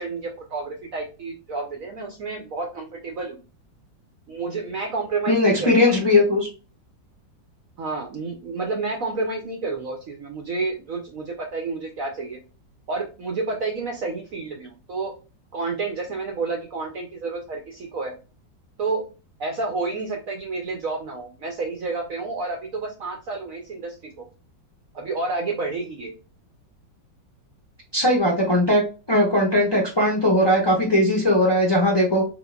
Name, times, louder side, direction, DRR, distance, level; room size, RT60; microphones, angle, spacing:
voice 1, 0.0-3.4 4.3-6.2 7.8-12.4 12.9-15.1 15.5-18.1 18.8-19.0 19.4-24.3 24.9-26.1, right 3 dB, 65° right, 2 dB, 0.8 m, -30 dB
voice 2, 5.3-6.5 27.9-28.8 29.1-32.2, left 1 dB, 35° left, -4 dB, 0.4 m, -19 dB
3.8 x 3.8 x 2.3 m, 0.33 s
omnidirectional pair, 2.0 m